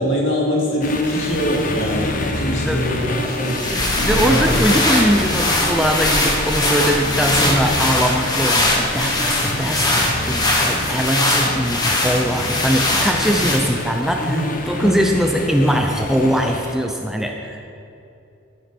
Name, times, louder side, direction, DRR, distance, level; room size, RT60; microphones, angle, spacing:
voice 1, 0.0-4.5 7.4-7.7 13.3-13.5 14.2-14.5 14.8-15.1, equal, 65° left, -2 dB, 2.3 m, -23 dB
sound 1, 0.8-16.8, left 2 dB, 40° left, 0.8 m, -28 dB
sound 2, 3.3-13.9, left 1 dB, 20° left, 1.2 m, -21 dB
voice 2, 4.0-14.4 14.7-17.6, equal, ahead, 2 dB, 0.5 m, -21 dB
12.5 x 6.9 x 6.0 m, 2.7 s
head